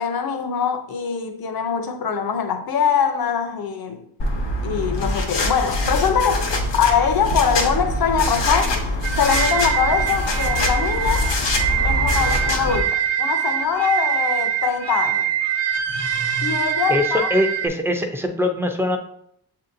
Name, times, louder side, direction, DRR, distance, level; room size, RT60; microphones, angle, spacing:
voice 1, 0.0-4.0 4.6-6.5 6.7-8.8 9.1-11.3 11.8-15.3 16.4-17.3, left 7 dB, 60° left, 0.6 m, -22 dB
sound 1, 4.2-12.8, left 1 dB, 85° left, 0.8 m, -23 dB
sound 2, 9.0-17.7, right 9 dB, 75° right, 0.6 m, -24 dB
voice 2, 16.9-19.0, left 1 dB, 5° right, 0.3 m, -22 dB
7.0 x 2.7 x 2.5 m
wide cardioid pair, 150°, 42 cm